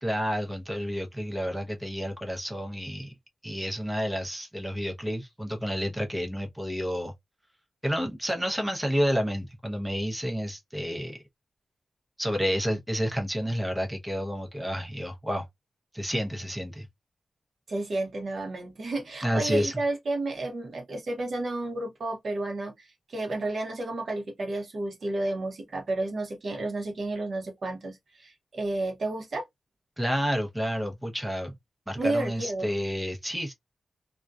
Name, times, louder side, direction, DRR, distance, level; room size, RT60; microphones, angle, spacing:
voice 1, 0.0-3.1 3.4-7.1 7.8-11.2 12.2-15.5 15.9-16.9 19.2-19.8 30.0-31.6 31.9-33.5, equal, 5° right, 0.6 m, -30 dB
voice 2, 17.7-29.4 32.0-32.7, right 2 dB, 50° right, 0.8 m, -31 dB
2.5 x 2.2 x 2.2 m
wide cardioid pair, 160°, 0 cm